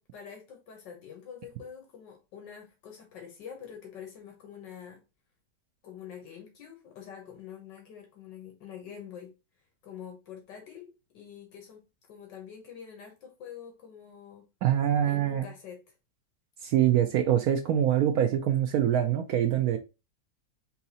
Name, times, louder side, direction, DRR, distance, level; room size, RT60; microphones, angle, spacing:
voice 1, 0.0-5.0 5.8-9.3 9.8-14.4 15.0-15.8, left 8 dB, 75° left, 1.7 m, -46 dB
voice 2, 14.6-15.5 16.6-19.8, right 10 dB, 70° right, 0.9 m, -24 dB
4.6 x 2.8 x 4.0 m
omnidirectional pair, 1.9 m